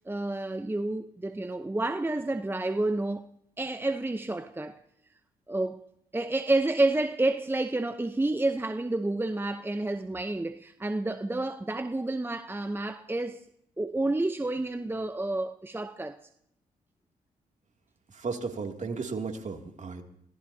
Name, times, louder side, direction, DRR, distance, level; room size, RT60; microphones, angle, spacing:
voice 1, 0.1-3.3 3.6-4.8 5.5-5.8 6.1-13.4 13.8-16.2, right 2 dB, 15° right, 0.8 m, -29 dB
voice 2, 18.1-20.0, right 4 dB, 45° right, 2.7 m, -34 dB
27.0 x 18.0 x 2.8 m
supercardioid pair, 55°, 17 cm